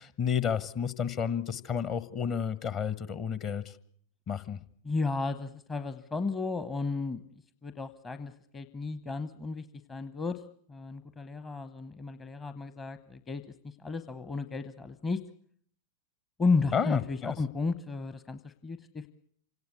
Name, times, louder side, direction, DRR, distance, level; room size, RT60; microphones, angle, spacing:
voice 1, 0.0-3.7 4.3-4.6 16.7-17.3, left 7 dB, 35° left, 16 dB, 1.2 m, -31 dB
voice 2, 4.8-10.4 10.7-15.2 16.4-19.1, left 4 dB, 20° left, 11 dB, 0.9 m, -33 dB
26.5 x 18.0 x 8.3 m, 0.63 s
figure-of-eight pair, 90°, 0 cm